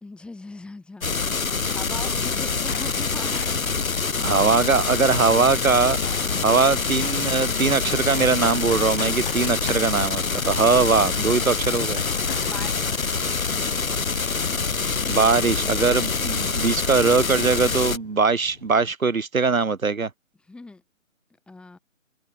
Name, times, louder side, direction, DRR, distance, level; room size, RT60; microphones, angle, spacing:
voice 1, 0.0-4.0 12.4-13.0 20.5-20.8 21.5-21.8, left 3 dB, ahead, 3.2 m, -40 dB
sound 1, 1.0-18.0, left 4 dB, 85° left, 1.1 m, -25 dB
Run, 1.6-18.9, left 7 dB, 40° left, 1.4 m, -42 dB
voice 2, 4.2-6.0 6.4-12.0 15.1-20.1, right 4 dB, 85° right, 1.0 m, -21 dB
open air
figure-of-eight pair, 145°, 40 cm